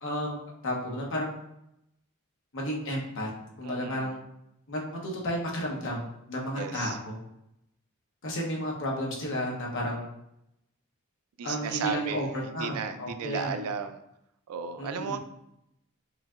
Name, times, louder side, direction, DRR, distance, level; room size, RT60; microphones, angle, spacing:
voice 1, 0.0-0.4 0.6-1.3 2.5-3.3 3.6-4.2 4.7-6.0 6.3-7.2 8.2-10.1 11.4-12.3 12.5-13.6 14.8-15.2, equal, 60° left, -2 dB, 1.0 m, -32 dB
voice 2, 3.6-4.2 6.5-7.0 11.4-14.0 14.5-15.2, right 6 dB, 90° right, 8 dB, 0.4 m, -34 dB
4.9 x 2.7 x 2.4 m, 0.80 s
head